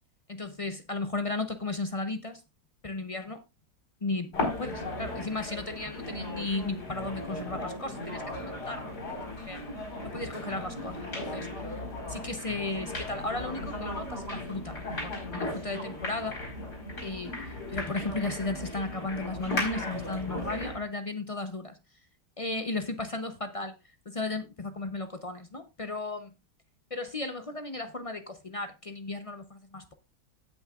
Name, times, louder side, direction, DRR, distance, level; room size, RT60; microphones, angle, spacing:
voice 1, 0.3-2.4 2.8-3.4 4.0-9.0 9.5-9.6 10.0-11.5 12.1-16.4 17.0-17.3 17.7-21.7 22.4-23.8 24.1-26.3 26.9-29.9, left 2 dB, 45° left, 0.4 m, -35 dB
sound 1, 4.3-20.8, left 1 dB, 70° left, 5.0 m, -36 dB
17.5 x 6.3 x 2.4 m
omnidirectional pair, 1.8 m